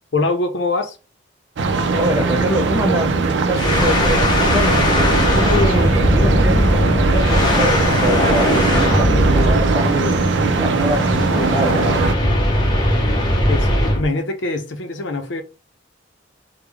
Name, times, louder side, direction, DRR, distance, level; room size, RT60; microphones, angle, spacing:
voice 1, 0.1-1.0 13.5-15.4, left 2 dB, 70° left, 0.7 m, -23 dB
sound 1, 1.6-12.1, right 4 dB, 70° right, 0.5 m, -20 dB
voice 2, 1.9-10.3 10.6-12.0, equal, 15° right, 0.6 m, -24 dB
sound 2, 3.5-14.1, left 1 dB, 25° left, 1.0 m, -19 dB
3.5 x 2.2 x 3.3 m
head